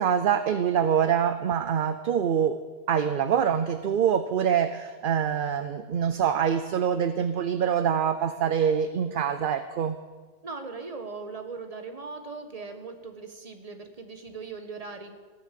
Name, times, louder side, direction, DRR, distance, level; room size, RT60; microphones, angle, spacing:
voice 1, 0.0-2.6 2.9-10.0, right 8 dB, 55° right, 10 dB, 0.7 m, -25 dB
voice 2, 10.4-15.2, right 4 dB, 30° right, 6 dB, 1.4 m, -39 dB
14.5 x 10.5 x 7.5 m, 1.4 s
omnidirectional pair, 1.2 m